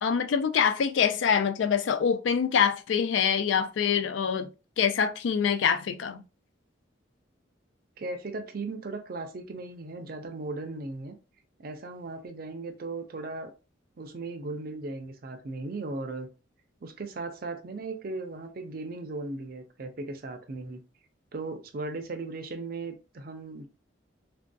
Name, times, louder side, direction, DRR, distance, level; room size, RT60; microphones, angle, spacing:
voice 1, 0.0-4.5 4.8-6.2, left 7 dB, 80° left, 0.4 m, -25 dB
voice 2, 8.0-11.1 11.6-13.5 14.0-16.3 16.8-20.8 21.3-23.7, right 3 dB, 50° right, 0.5 m, -37 dB
3.4 x 2.6 x 2.2 m
head